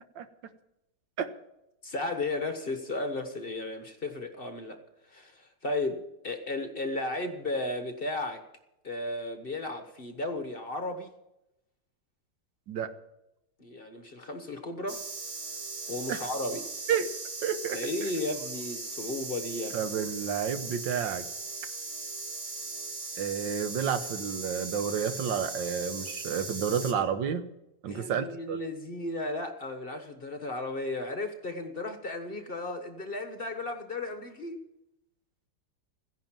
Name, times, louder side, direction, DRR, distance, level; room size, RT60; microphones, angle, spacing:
voice 1, 1.8-4.8 5.1-8.4 8.8-11.1 13.6-15.0 15.9-16.7 17.7-19.9 27.9-34.6, left 2 dB, 35° left, 7 dB, 1.3 m, -34 dB
sound 1, 14.9-26.9, right 3 dB, 40° right, 1.7 m, -38 dB
voice 2, 17.4-17.8 19.7-21.2 23.2-27.4 27.8-28.6, right 7 dB, 90° right, 11 dB, 1.7 m, -30 dB
15.0 x 10.5 x 7.4 m, 0.88 s
omnidirectional pair, 2.0 m